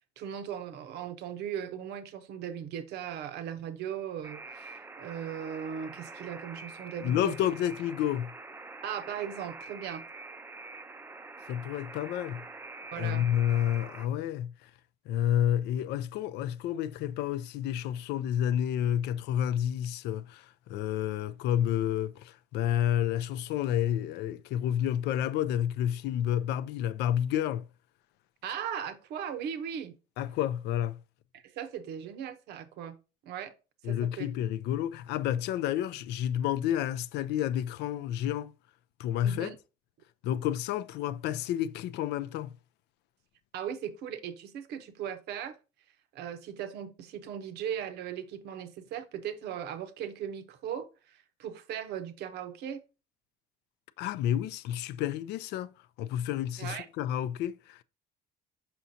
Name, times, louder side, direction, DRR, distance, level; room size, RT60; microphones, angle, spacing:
voice 1, 0.2-7.3 8.8-10.0 12.9-13.3 28.4-30.0 31.3-33.0 33.2-33.5 33.8-34.3 39.2-39.5 43.5-45.6 46.1-52.8 56.6-56.9, right 9 dB, 80° right, 0.8 m, -38 dB
Alarm, 4.2-14.1, right 3 dB, 15° right, 0.4 m, -46 dB
voice 2, 7.0-8.3 11.5-12.4 13.0-14.5 15.1-27.7 30.2-31.0 33.8-38.5 39.0-39.5 40.2-42.5 54.0-55.7 56.0-57.8, left 11 dB, 85° left, 0.4 m, -30 dB
6.1 x 5.7 x 2.7 m
cardioid pair, 110°, 17 cm